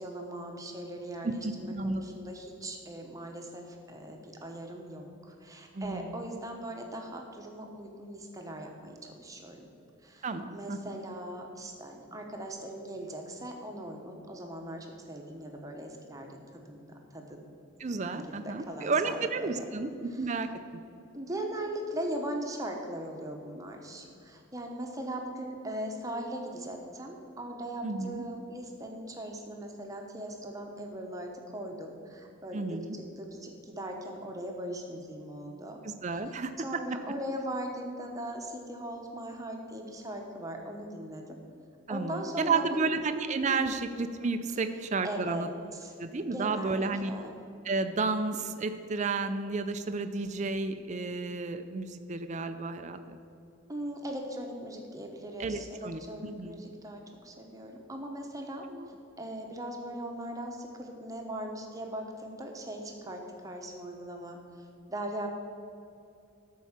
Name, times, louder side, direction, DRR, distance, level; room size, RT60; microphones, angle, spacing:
voice 1, 0.0-9.7 10.0-17.4 17.9-19.6 20.2-20.3 21.1-32.8 33.2-35.8 36.1-41.4 41.9-42.9 43.5-43.6 45.0-45.5 45.7-45.9 46.2-47.3 53.7-58.7 59.2-65.3, right 1 dB, 15° right, 2 dB, 1.0 m, -39 dB
voice 2, 1.2-2.0 5.7-6.3 10.2-11.0 17.8-20.5 27.8-28.2 32.5-33.0 35.8-36.5 41.9-45.5 46.0-47.1 47.6-53.2 55.4-56.0 56.4-56.6 58.7-58.9, right 3 dB, 35° right, 8 dB, 0.5 m, -32 dB
12.5 x 4.7 x 7.3 m, 2.7 s
head